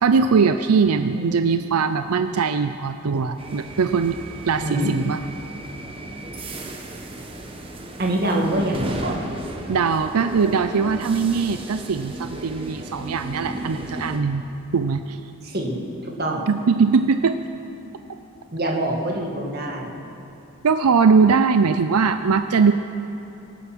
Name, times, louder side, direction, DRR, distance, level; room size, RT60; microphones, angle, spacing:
voice 1, 0.0-4.2 4.5-5.2 9.7-14.4 14.7-15.2 16.5-17.4 20.6-22.7, right 5 dB, 90° right, 9 dB, 0.5 m, -20 dB
voice 2, 0.9-1.4 4.6-4.9 8.0-9.3 15.4-16.4 18.5-19.9, right 1 dB, 45° right, 0 dB, 2.1 m, -25 dB
sound 1, 3.4-14.2, right 1 dB, 25° right, 1.2 m, -35 dB
23.5 x 9.2 x 6.2 m, 2.9 s
head